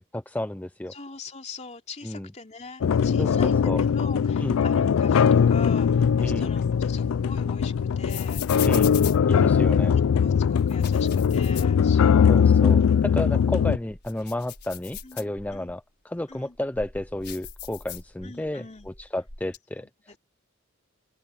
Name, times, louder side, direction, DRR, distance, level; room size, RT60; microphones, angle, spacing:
voice 1, 0.0-0.9 2.0-2.3 3.2-3.8 4.4-4.6 6.2-6.5 8.6-9.0 9.3-10.0 12.3-20.2, left 1 dB, 10° left, 0.5 m, -32 dB
voice 2, 0.9-8.5 9.6-9.8 10.1-12.6 15.0-15.7 16.3-16.6 18.2-18.9 19.8-20.2, left 4 dB, 35° left, 2.9 m, -43 dB
sound 1, 2.8-13.8, left 7 dB, 85° left, 0.4 m, -21 dB
sound 2, 6.6-10.0 10.6-12.4 12.8-12.9 13.4-15.8 16.3-18.5 18.8-19.6, left 9 dB, 55° left, 6.1 m, -40 dB
open air
head